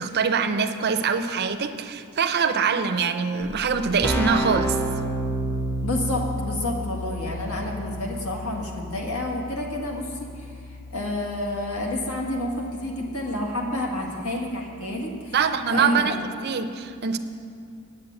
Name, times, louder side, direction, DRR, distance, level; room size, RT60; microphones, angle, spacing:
voice 1, 0.0-4.8 15.3-16.1 16.4-17.2, right 6 dB, 50° right, 8 dB, 0.6 m, -24 dB
Keyboard (musical), 3.5-3.6 3.7-14.3, right 1 dB, 10° left, 0.7 m, -32 dB
voice 2, 5.8-15.4 15.7-16.1, left 1 dB, 70° left, 0 dB, 1.6 m, -29 dB
8.7 x 8.2 x 7.7 m, 2.3 s
head